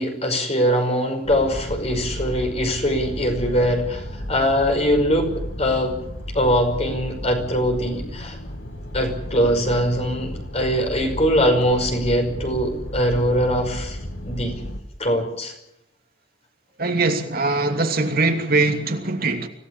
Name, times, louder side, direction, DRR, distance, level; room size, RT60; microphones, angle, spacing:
voice 1, 0.0-6.0 6.3-8.4 8.9-14.0 14.2-14.6 15.0-15.5, equal, 35° left, 5.5 m, -22 dB
sound 1, 1.2-14.8, equal, 75° left, 2.8 m, -33 dB
voice 2, 16.8-19.5, right 3 dB, 50° right, 2.7 m, -21 dB
25.5 x 17.5 x 7.2 m
head